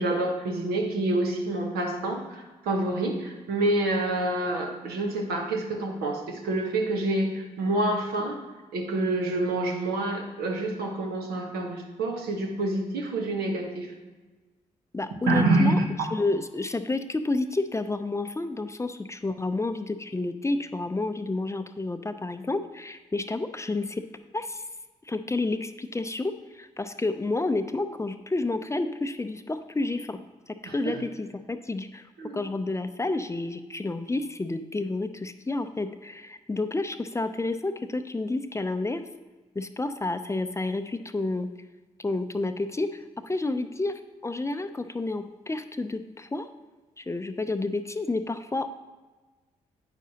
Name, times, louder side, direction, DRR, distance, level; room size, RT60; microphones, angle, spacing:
voice 1, 0.0-8.4 8.7-13.9 15.3-15.7 30.6-31.0 32.2-32.4, right 2 dB, 75° right, 2 dB, 1.1 m, -27 dB
voice 2, 14.9-15.8 16.1-24.0 24.3-24.7 25.1-30.2 30.5-32.1 32.3-39.0 39.6-41.5 42.0-46.5 47.0-48.7, left 2 dB, 20° left, 9 dB, 0.5 m, -30 dB
8.9 x 6.0 x 2.8 m, 1.2 s
hypercardioid pair, 45°, 16 cm